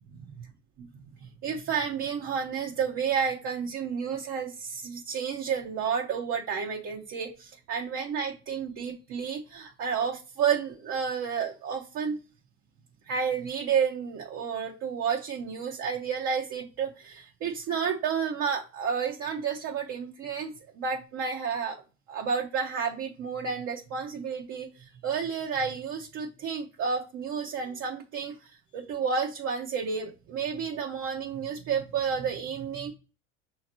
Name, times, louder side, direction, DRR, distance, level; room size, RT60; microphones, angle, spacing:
voice 1, 1.1-12.2 13.1-21.8 22.1-32.9, right 6 dB, 45° right, 0 dB, 0.9 m, -31 dB
5.6 x 2.9 x 2.9 m, 0.33 s
hypercardioid pair, 75°, 37 cm